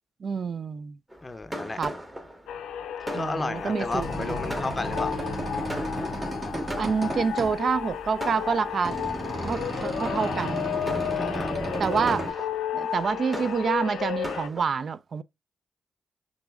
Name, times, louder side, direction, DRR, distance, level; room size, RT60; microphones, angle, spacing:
voice 1, 0.2-1.0 1.8-1.9 3.1-4.4 6.8-9.0 9.4-10.7 11.8-15.2, right 5 dB, 60° right, 0.3 m, -28 dB
Fireworks, 1.1-7.6 8.2-9.1 9.7-9.9 10.5-14.6, equal, 20° right, 1.4 m, -39 dB
voice 2, 1.2-1.8 3.1-5.2 11.2-11.6, left 2 dB, 30° left, 0.5 m, -33 dB
sound 1, 2.5-14.5, left 9 dB, 80° left, 0.4 m, -33 dB
sound 2, 3.6-12.3, equal, 45° right, 1.7 m, -33 dB
6.0 x 2.7 x 2.3 m
supercardioid pair, 45°, 0 cm